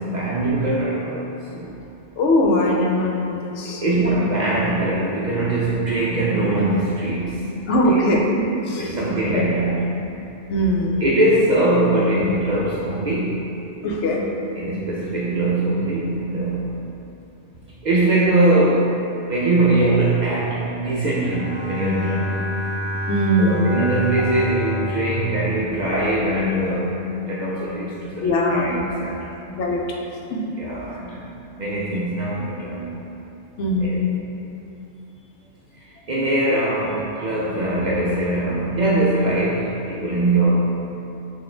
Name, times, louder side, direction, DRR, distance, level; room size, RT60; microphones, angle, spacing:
voice 1, 0.0-1.7 3.6-7.5 7.9-8.0 8.8-9.8 11.0-13.5 14.6-16.7 17.8-19.0 19.3-22.5 23.4-29.3 30.6-31.3 31.6-33.0 33.8-34.0 35.8-40.5, right 2 dB, 55° right, -6 dB, 0.5 m, -22 dB
voice 2, 2.1-3.8 4.1-4.2 7.7-8.9 9.3-9.4 10.5-11.0 13.8-14.2 23.1-23.8 28.2-28.7 29.6-29.8 30.3-30.4 33.6-34.2, left 1 dB, 85° left, -1 dB, 0.9 m, -20 dB
Bowed string instrument, 21.2-26.5, equal, 15° left, 0.7 m, -29 dB
4.1 x 2.5 x 4.4 m, 2.8 s
omnidirectional pair, 1.2 m